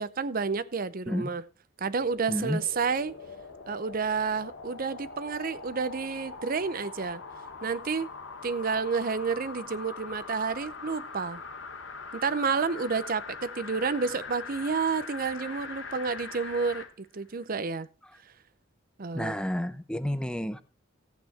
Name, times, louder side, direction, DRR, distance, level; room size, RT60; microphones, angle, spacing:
voice 1, 0.0-1.4 1.8-3.2 3.7-7.2 7.6-8.1 8.4-11.4 12.1-17.9 19.0-19.3, right 5 dB, 50° right, 0.7 m, -30 dB
sound 1, 1.9-16.9 17.4-17.5, left 4 dB, 85° left, 2.2 m, -42 dB
voice 2, 2.3-2.6 19.1-20.6, equal, 5° left, 0.7 m, -30 dB
14.5 x 8.6 x 4.2 m
head